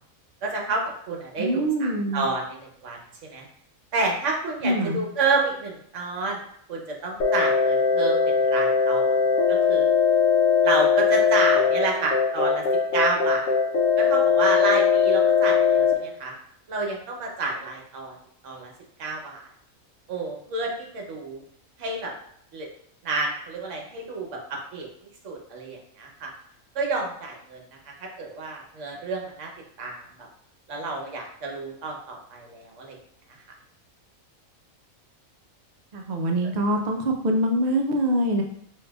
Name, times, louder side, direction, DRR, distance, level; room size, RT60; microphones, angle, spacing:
voice 1, 0.4-3.5 3.9-6.4 6.7-9.2 9.5-9.9 10.6-12.6 12.9-13.5 14.0-16.3 16.7-18.1 18.4-18.7 19.0-19.4 20.1-21.4 21.8-22.1 22.5-22.7 23.0-24.9 25.2-26.3 26.7-27.6 28.2-29.5 29.8-30.0 30.7-33.0, right 3 dB, 65° right, 0 dB, 1.1 m, -29 dB
voice 2, 1.4-2.3 4.6-5.0 35.9-38.4, right 1 dB, 80° right, 2 dB, 0.3 m, -24 dB
sound 1, 7.2-15.9, left 6 dB, 70° left, 0.9 m, -20 dB
5.5 x 2.7 x 2.3 m, 0.67 s
omnidirectional pair, 1.4 m